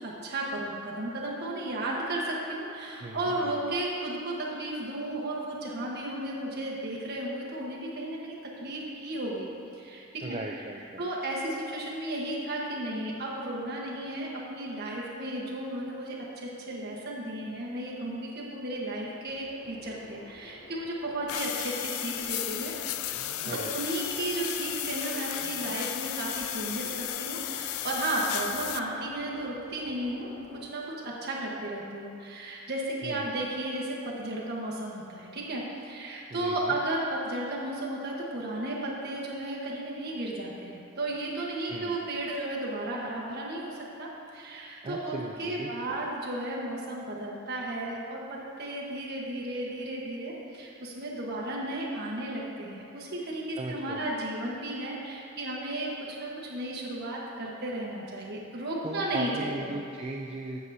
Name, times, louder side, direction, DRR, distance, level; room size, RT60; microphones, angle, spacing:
voice 1, 0.0-9.5 9.8-10.4 11.0-22.7 23.4-59.7, right 1 dB, 50° right, -4 dB, 1.2 m, -34 dB
voice 2, 3.0-3.6 10.2-11.1 23.5-23.9 33.0-33.4 36.3-36.8 41.7-42.0 44.8-46.0 53.6-54.0 54.5-54.6 58.8-60.6, right 2 dB, 25° right, -1 dB, 0.3 m, -38 dB
Subway metro underground, 19.3-30.7, left 1 dB, 45° left, 0.7 m, -50 dB
sound 1, 21.3-28.8, left 12 dB, 85° left, 0.3 m, -34 dB
8.0 x 7.6 x 2.7 m, 2.6 s
head